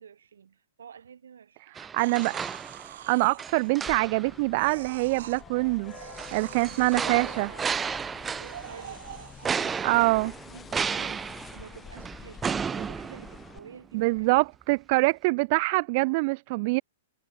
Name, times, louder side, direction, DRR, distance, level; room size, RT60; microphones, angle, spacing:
voice 1, 0.0-1.7 6.5-14.5, right 7 dB, 90° right, 6.6 m, -48 dB
sound 1, 1.8-3.1 3.4-4.4 6.2-8.8 9.4-13.8 14.2-14.3, right 6 dB, 15° right, 0.9 m, -33 dB
voice 2, 1.8-2.4 3.1-5.9 6.3-7.5 9.8-10.3 13.9-16.8, right 26 dB, 45° right, 0.3 m, -24 dB
sound 2, 2.0-4.2 4.5-5.4 5.8-7.5 8.1-10.1 10.7-10.8, right 12 dB, 65° right, 2.6 m, -46 dB
sound 3, 3.9-13.6, left 7 dB, 15° left, 2.9 m, -47 dB
hypercardioid pair, 135°, 0 cm